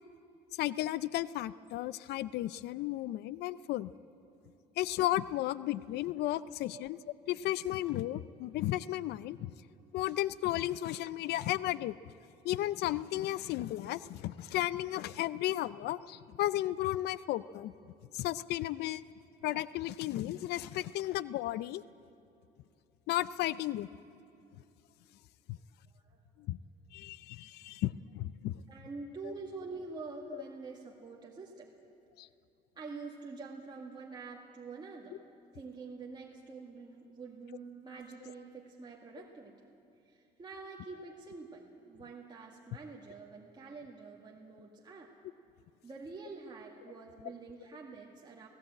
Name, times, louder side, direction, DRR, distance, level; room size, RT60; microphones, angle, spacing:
voice 1, 0.6-3.9 4.8-7.0 7.3-9.5 9.9-11.9 12.4-17.7 18.1-19.0 19.4-21.8 23.1-23.9 25.5-25.6 26.5-26.6 26.9-28.6 29.2-29.3 30.3-30.4 32.2-32.3 39.2-39.3, left 14 dB, 75° left, 18 dB, 0.5 m, -34 dB
voice 2, 28.7-31.7 32.8-35.2 35.5-39.8 40.0-45.1 45.8-48.5, right 4 dB, 25° right, -2 dB, 1.9 m, -46 dB
18.5 x 16.5 x 8.8 m, 2.7 s
cardioid pair, 110°, 17 cm